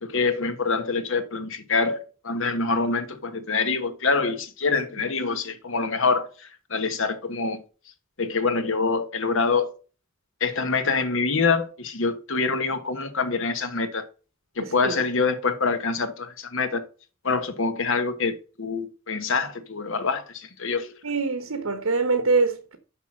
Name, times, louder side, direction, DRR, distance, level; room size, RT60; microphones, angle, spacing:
voice 1, 0.0-7.6 8.2-9.7 10.4-14.0 14.6-16.8 17.2-20.9, left 4 dB, 65° left, 1.4 m, -25 dB
voice 2, 14.6-14.9 21.0-22.8, right 4 dB, 85° right, 1.1 m, -24 dB
6.7 x 5.9 x 6.3 m
head